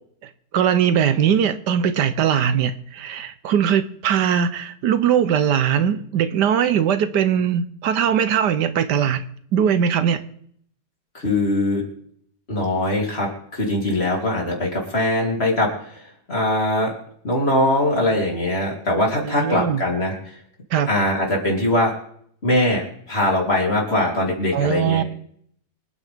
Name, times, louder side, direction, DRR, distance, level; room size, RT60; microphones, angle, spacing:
voice 1, 0.2-9.2 9.5-10.2 19.2-19.8 20.7-20.9 24.5-25.0, right 8 dB, 80° right, 12 dB, 1.4 m, -20 dB
voice 2, 11.1-11.9 12.5-16.0 16.3-16.9 17.2-20.2 20.9-21.9 22.4-25.0, left 1 dB, 35° left, -2 dB, 3.6 m, -21 dB
26.0 x 9.4 x 3.6 m, 0.65 s
omnidirectional pair, 1.8 m